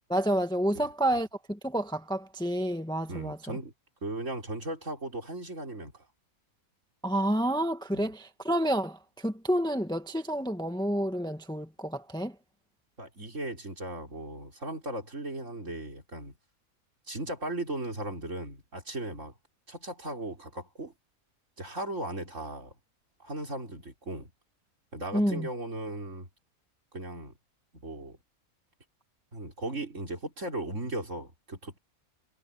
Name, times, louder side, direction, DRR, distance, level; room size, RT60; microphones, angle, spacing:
voice 1, 0.1-3.6 7.0-12.3 25.1-25.5, right 1 dB, 5° left, 1.3 m, -29 dB
voice 2, 3.1-3.7 4.0-6.1 7.9-8.1 13.0-16.4 17.1-19.3 19.7-20.9 21.6-22.7 23.2-24.3 24.9-26.3 26.9-27.4 27.7-28.2 29.3-31.8, right 1 dB, 60° right, 5.4 m, -37 dB
omnidirectional pair, 1.5 m